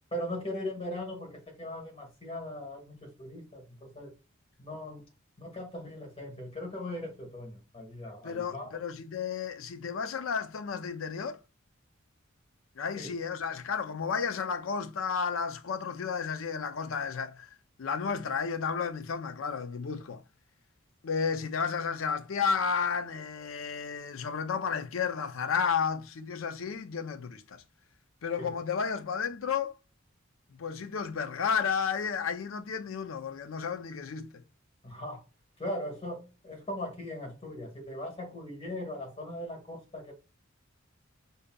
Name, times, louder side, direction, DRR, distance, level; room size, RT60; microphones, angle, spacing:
voice 1, 0.1-4.1 4.6-5.1 5.4-8.7 13.0-13.1 28.4-28.5 34.8-35.2 35.6-40.1, left 1 dB, 30° left, 1.4 m, -39 dB
voice 2, 8.2-11.4 12.8-17.5 17.8-20.2 21.0-27.6 28.2-29.7 30.5-34.4, left 6 dB, 75° left, 0.5 m, -32 dB
5.0 x 2.8 x 2.3 m
head